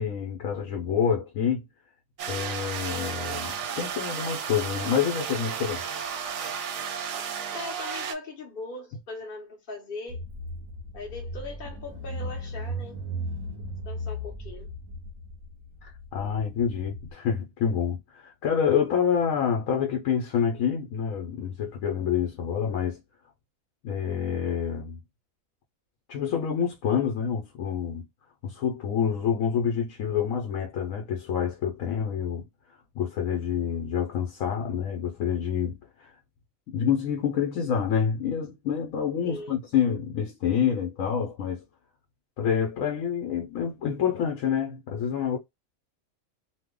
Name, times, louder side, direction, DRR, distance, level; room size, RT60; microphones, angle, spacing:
voice 1, 0.0-1.6 2.3-5.8 15.8-23.0 23.8-25.0 26.1-28.0 28.4-32.4 33.0-36.1 36.7-41.6 42.4-45.4, left 7 dB, 75° left, 1.1 m, -27 dB
sound 1, 2.2-8.1, right 7 dB, 65° right, 0.8 m, -33 dB
voice 2, 7.5-10.2 10.9-13.0 13.9-14.7 39.2-39.6, left 2 dB, 45° left, 0.8 m, -39 dB
Car / Engine, 10.1-17.1, equal, 25° right, 0.8 m, -37 dB
2.8 x 2.1 x 3.6 m
omnidirectional pair, 1.5 m